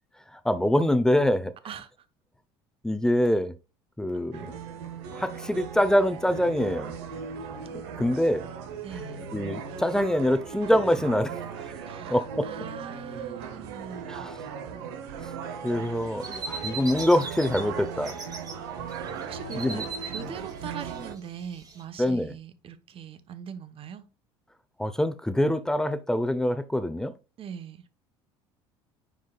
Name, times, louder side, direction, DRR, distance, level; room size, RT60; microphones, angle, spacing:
voice 1, 0.4-1.5 2.8-3.5 4.0-4.5 5.1-6.9 8.0-8.4 9.3-11.4 12.1-12.5 14.1-14.3 15.6-18.2 19.5-19.8 22.0-22.3 24.8-27.1, left 1 dB, 5° left, 0.8 m, -24 dB
sound 1, 4.3-21.1, right 6 dB, 80° right, 1.1 m, -38 dB
voice 2, 8.8-9.2 11.9-14.3 19.2-24.1 27.4-27.8, right 8 dB, 45° right, 1.1 m, -41 dB
sound 2, 15.7-17.6 17.9-18.5 18.9-21.8, right 4 dB, 30° right, 2.2 m, -39 dB
9.2 x 4.9 x 2.4 m
supercardioid pair, 80°, 13 cm